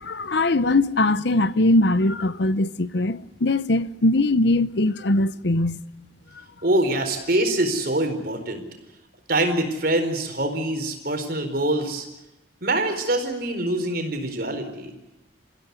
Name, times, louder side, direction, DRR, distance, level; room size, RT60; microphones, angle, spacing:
voice 1, 0.0-5.8, left 2 dB, 60° left, 0.8 m, -21 dB
voice 2, 6.6-8.6 9.3-12.1 12.6-14.9, right 1 dB, 50° right, 4.6 m, -24 dB
28.5 x 16.0 x 9.7 m
head